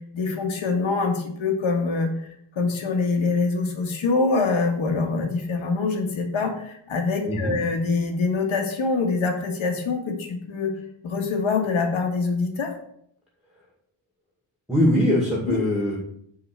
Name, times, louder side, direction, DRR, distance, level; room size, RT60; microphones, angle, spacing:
voice 1, 0.1-2.1 2.6-10.7 11.0-12.7 15.5-15.6, left 4 dB, 85° left, 2 dB, 1.9 m, -24 dB
voice 2, 7.2-7.5 14.7-16.0, left 1 dB, ahead, -3 dB, 2.2 m, -21 dB
9.6 x 4.0 x 7.0 m, 0.70 s
wide cardioid pair, 165°, 47 cm